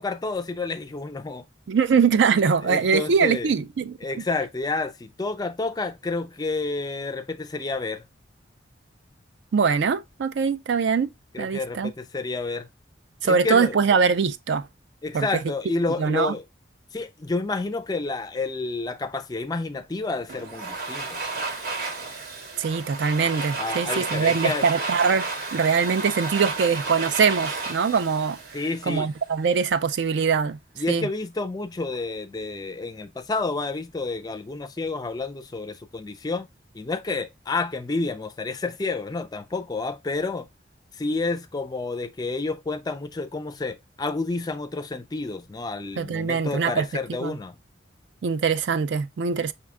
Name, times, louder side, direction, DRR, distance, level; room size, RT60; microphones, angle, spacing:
voice 1, 0.0-1.4 2.6-3.5 4.0-8.1 11.3-12.7 13.2-13.8 15.0-16.4 16.9-21.2 23.6-24.7 28.5-29.1 30.8-36.5 36.7-40.5 41.0-47.6, left 3 dB, 20° left, 0.4 m, -29 dB
voice 2, 1.7-4.0 9.5-11.1 11.4-11.9 13.2-14.7 15.1-15.3 16.0-16.3 22.6-28.4 28.8-30.6 30.9-31.1 46.0-46.9 47.2-47.4 48.2-49.5, right 5 dB, 70° right, 0.4 m, -22 dB
Domestic sounds home sounds, 20.3-29.2, right 3 dB, 50° right, 0.9 m, -32 dB
5.4 x 2.2 x 3.5 m
head